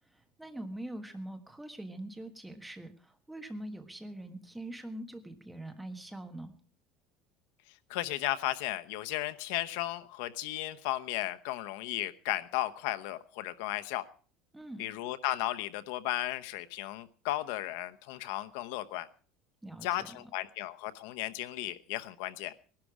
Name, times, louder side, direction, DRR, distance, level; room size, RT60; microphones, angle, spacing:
voice 1, 0.1-6.5 14.5-14.9 19.6-20.3, right 1 dB, 5° right, 7 dB, 1.5 m, -43 dB
voice 2, 7.9-14.0 14.8-19.1 19.8-22.5, left 15 dB, 75° left, 11 dB, 0.9 m, -35 dB
19.0 x 12.0 x 4.9 m, 0.42 s
cardioid pair, 155°, 0 cm